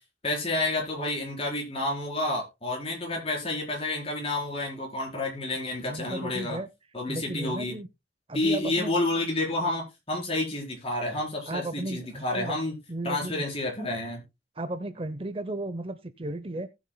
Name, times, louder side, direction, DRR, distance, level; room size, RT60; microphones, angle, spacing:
voice 1, 0.2-6.6 6.9-7.8 8.3-12.8 13.0-14.2, left 2 dB, 35° left, 4.5 m, -30 dB
voice 2, 5.8-6.7 7.1-7.9 8.3-8.9 11.5-12.6 12.9-13.4 14.6-16.7, right 2 dB, 30° right, 0.7 m, -34 dB
18.5 x 7.3 x 2.2 m
head